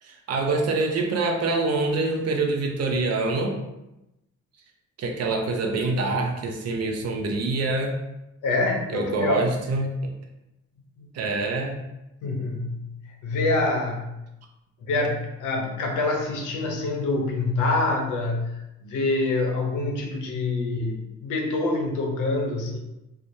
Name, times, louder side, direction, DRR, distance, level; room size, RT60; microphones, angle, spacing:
voice 1, 0.0-3.6 5.0-8.0 8.9-9.9 11.1-11.8, right 3 dB, 55° right, 2 dB, 0.6 m, -25 dB
voice 2, 8.4-9.4 11.0-11.1 12.2-12.9 13.2-14.2 14.8-18.5 18.8-22.8, left 2 dB, 85° left, 1 dB, 0.7 m, -26 dB
3.1 x 2.0 x 2.6 m, 0.91 s
cardioid pair, 90°, 30 cm